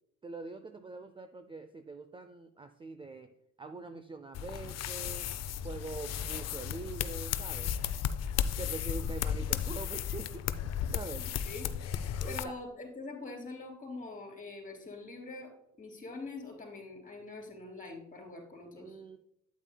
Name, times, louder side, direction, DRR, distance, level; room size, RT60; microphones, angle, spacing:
voice 1, 0.2-3.3 3.6-5.3 5.6-7.7 8.6-10.5 10.9-11.3 11.9-12.6 18.8-19.2, right 3 dB, 20° right, 9 dB, 0.4 m, -44 dB
sound 1, 4.3-12.4, left 9 dB, 60° left, 0.5 m, -34 dB
voice 2, 12.3-15.5 15.8-19.0, left 3 dB, 25° left, 1 dB, 3.1 m, -44 dB
8.8 x 8.4 x 2.2 m, 0.77 s
cardioid pair, 90°, 30 cm